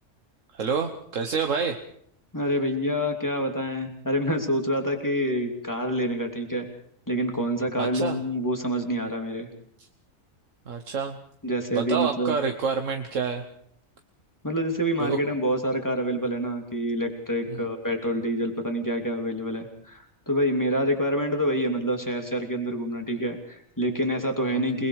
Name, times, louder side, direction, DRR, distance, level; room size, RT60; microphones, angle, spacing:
voice 1, 0.5-1.8 7.8-8.2 10.7-11.2 11.7-13.4 15.0-15.2 17.5-17.6, right 5 dB, 70° right, 5 dB, 1.6 m, -28 dB
voice 2, 2.3-6.7 7.1-9.5 11.4-12.4 14.4-24.9, equal, 15° left, 3 dB, 2.8 m, -27 dB
28.0 x 20.5 x 4.8 m, 0.64 s
omnidirectional pair, 1.4 m